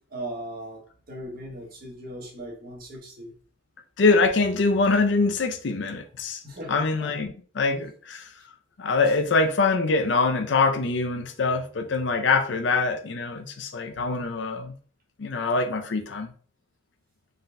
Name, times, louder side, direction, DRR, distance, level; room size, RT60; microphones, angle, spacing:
voice 1, 0.1-0.8 1.1-3.3 6.4-7.1 13.9-14.3, right 1 dB, 50° right, 1.3 m, -38 dB
voice 2, 4.0-6.4 6.7-8.3 8.8-14.8 15.2-16.3, left 3 dB, 70° left, 0.5 m, -24 dB
3.9 x 3.9 x 2.2 m
head